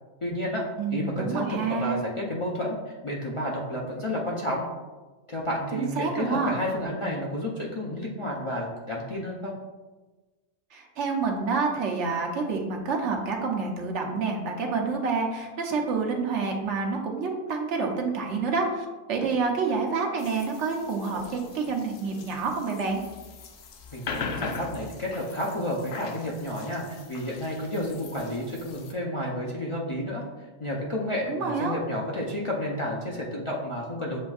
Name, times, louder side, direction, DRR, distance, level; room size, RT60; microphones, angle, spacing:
voice 1, 0.2-0.6 0.9-4.6 5.3-9.5 23.9-30.2 30.6-34.2, left 1 dB, 45° left, -4 dB, 0.4 m, -31 dB
voice 2, 0.8-2.0 5.7-6.5 10.7-23.0 31.3-31.7, right 4 dB, 80° right, 1 dB, 1.1 m, -28 dB
sound 1, 20.2-28.9, left 4 dB, 70° left, 0.8 m, -40 dB
7.4 x 2.6 x 2.4 m, 1.2 s
omnidirectional pair, 1.2 m